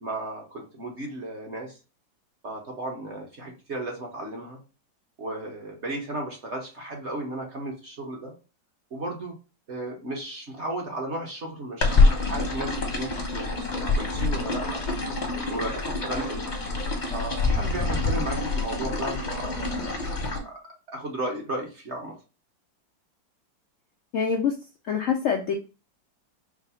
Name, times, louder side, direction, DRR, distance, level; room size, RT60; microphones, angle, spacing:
voice 1, 0.0-1.8 2.4-4.6 5.2-8.3 8.9-9.3 9.7-13.5 13.9-14.9 15.5-16.5 17.1-19.9 20.4-20.5 20.9-22.1, right 1 dB, 45° right, 0 dB, 1.0 m, -34 dB
sound 1, 11.8-20.4, left 3 dB, 35° left, 0.7 m, -26 dB
voice 2, 24.1-24.6 24.8-25.5, left 6 dB, 85° left, 0 dB, 0.6 m, -25 dB
4.6 x 2.0 x 4.2 m, 0.33 s
omnidirectional pair, 2.1 m